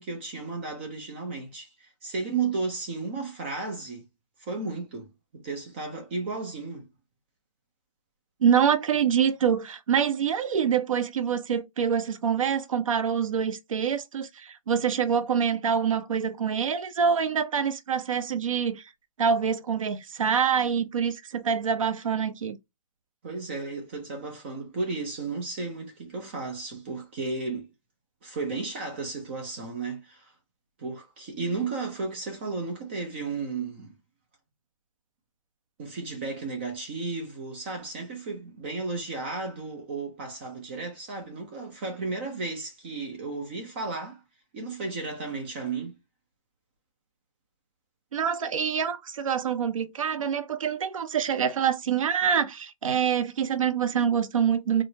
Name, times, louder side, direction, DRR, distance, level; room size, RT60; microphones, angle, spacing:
voice 1, 0.0-4.0 4.4-6.9 23.2-27.7 28.2-30.3 30.8-33.9 35.8-44.2 44.5-46.0, right 4 dB, 20° right, 0.5 m, -34 dB
voice 2, 8.4-18.9 19.2-22.6 48.1-54.8, right 7 dB, 70° right, 0.6 m, -25 dB
4.4 x 2.0 x 2.7 m
hypercardioid pair, 165°, 18 cm